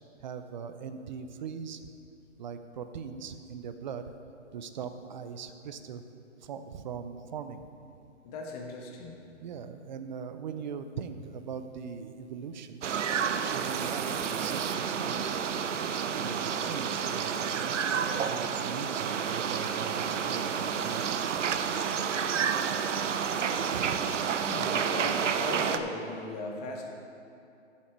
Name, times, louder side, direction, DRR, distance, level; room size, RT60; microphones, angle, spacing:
voice 1, 0.2-1.8 2.4-4.0 4.5-6.0 6.4-7.6 9.4-12.8 13.4-15.3 16.2-21.4 23.7-23.9, right 6 dB, 40° right, 9 dB, 0.6 m, -40 dB
voice 2, 8.2-9.2 24.4-26.8, left 2 dB, 30° left, 0 dB, 1.5 m, -38 dB
sound 1, 12.8-25.8, right 7 dB, 75° right, 0.8 m, -30 dB
13.0 x 7.4 x 4.6 m, 2.6 s
hypercardioid pair, 150°, 37 cm